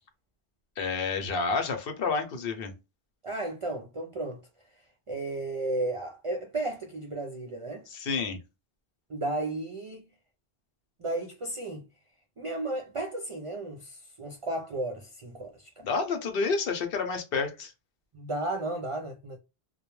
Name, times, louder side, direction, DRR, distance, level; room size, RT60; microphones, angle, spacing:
voice 1, 0.8-2.7 7.9-8.4 15.8-17.7, left 4 dB, 65° left, 0.8 m, -29 dB
voice 2, 3.2-4.4 5.1-7.8 9.1-10.1 11.0-11.8 12.4-15.8 18.1-19.4, right 2 dB, 55° right, 0.3 m, -34 dB
2.2 x 2.0 x 3.0 m
omnidirectional pair, 1.0 m